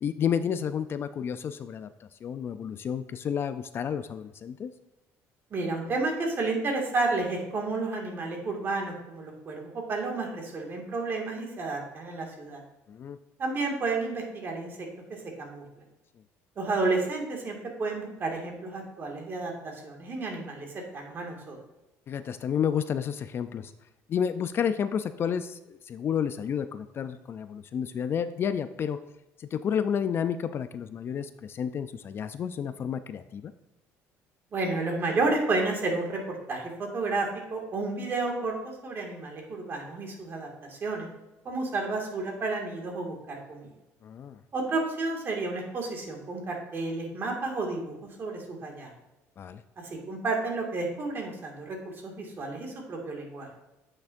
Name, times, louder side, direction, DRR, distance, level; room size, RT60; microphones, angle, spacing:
voice 1, 0.0-1.9 2.2-4.7 12.9-13.2 22.1-23.7 24.1-29.0 29.4-33.5 44.0-44.4 49.4-49.6, left 8 dB, 40° left, 11 dB, 0.3 m, -31 dB
voice 2, 5.5-12.6 13.4-15.8 16.6-21.6 34.5-41.1 41.4-43.7 44.5-48.9 49.8-51.8 52.0-53.5, right 3 dB, 40° right, 1 dB, 2.0 m, -31 dB
8.9 x 5.9 x 2.6 m, 0.97 s
cardioid pair, 110°, 6 cm